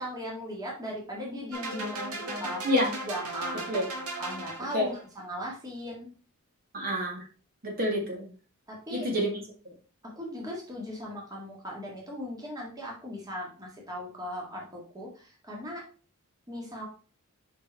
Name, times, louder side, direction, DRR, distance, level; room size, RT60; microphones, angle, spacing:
voice 1, 0.0-2.6 3.0-3.8 4.2-6.1 8.7-9.1 10.0-15.8 16.5-16.9, equal, 15° right, -2 dB, 1.7 m, -38 dB
sound 1, 1.5-5.0, right 1 dB, 85° right, 1.6 m, -37 dB
voice 2, 6.7-7.2 7.6-8.3 8.9-9.3, left 1 dB, 45° right, 0 dB, 2.0 m, -27 dB
5.4 x 5.1 x 4.4 m, 0.38 s
head